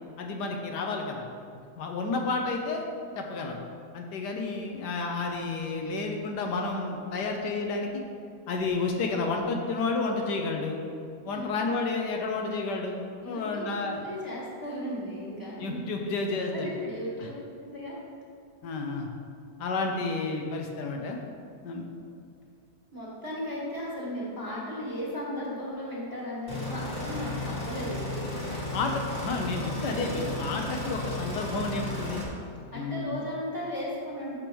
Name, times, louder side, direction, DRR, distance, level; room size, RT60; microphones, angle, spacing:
voice 1, 0.2-1.2 1.8-2.8 3.2-3.6 3.9-7.9 8.5-10.8 11.2-13.0 13.2-14.0 15.6-16.7 18.6-19.1 19.6-21.2 21.6-21.8 28.7-32.2 32.7-33.2, left 3 dB, 80° left, 2 dB, 1.3 m, -31 dB
voice 2, 13.2-15.8 16.5-17.3 17.6-18.0 22.9-28.4 32.7-34.4, equal, 10° right, -7 dB, 1.6 m, -36 dB
sound 1, 26.5-32.2, left 1 dB, 25° left, 1.6 m, -34 dB
12.0 x 5.1 x 3.0 m, 2.4 s
omnidirectional pair, 1.8 m